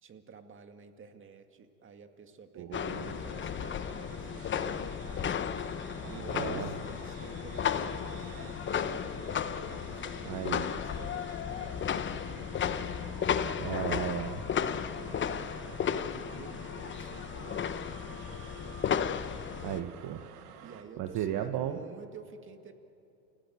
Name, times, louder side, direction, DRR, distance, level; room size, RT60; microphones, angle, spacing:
voice 1, 0.0-5.5 6.1-14.0 14.9-19.2 20.6-22.7, right 5 dB, 25° right, 7 dB, 2.2 m, -51 dB
voice 2, 2.5-3.2 6.0-6.7 10.2-10.7 13.6-14.4 19.6-20.3 21.0-21.8, right 11 dB, 40° right, 8 dB, 1.3 m, -35 dB
sound 1, 2.7-19.8, left 8 dB, 25° left, 1.0 m, -34 dB
sound 2, 2.8-20.8, right 8 dB, 70° right, 2.2 m, -51 dB
29.0 x 17.0 x 9.0 m, 2.8 s
hypercardioid pair, 100°, 48 cm